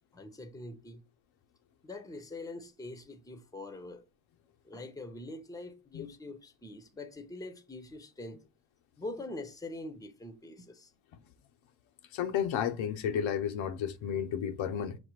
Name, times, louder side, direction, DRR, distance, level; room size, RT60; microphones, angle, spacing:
voice 1, 0.1-1.0 1.8-4.0 4.6-8.4 9.0-10.9, left 2 dB, 10° left, 0.7 m, -44 dB
voice 2, 12.1-15.0, left 8 dB, 75° left, 0.7 m, -32 dB
6.0 x 2.1 x 3.0 m
cardioid pair, 75°, 47 cm